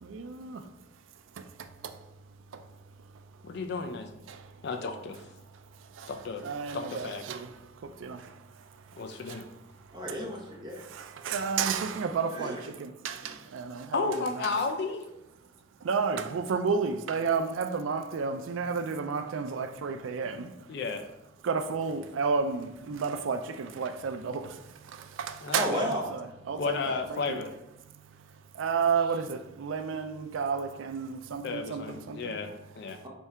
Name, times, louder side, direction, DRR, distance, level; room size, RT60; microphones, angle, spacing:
voice 1, 0.0-0.7 1.4-2.0 2.5-2.7 4.3-4.5 5.5-6.1 6.4-9.5 9.8-10.0 10.8-14.5 15.8-20.7 21.4-25.7 26.1-27.4 27.9-32.4 32.9-33.1, right 5 dB, 80° right, 0.4 m, -32 dB
voice 2, 3.4-4.1 4.6-5.2 6.1-6.4 6.7-7.2 9.0-9.4 13.9-15.1 20.7-21.0 25.4-25.8 26.6-27.5 31.4-33.0, left 4 dB, 55° left, 0.4 m, -33 dB
voice 3, 9.9-10.8 12.3-12.6 13.2-13.4 25.5-26.0, equal, 25° right, 0.8 m, -33 dB
3.5 x 2.7 x 4.3 m
head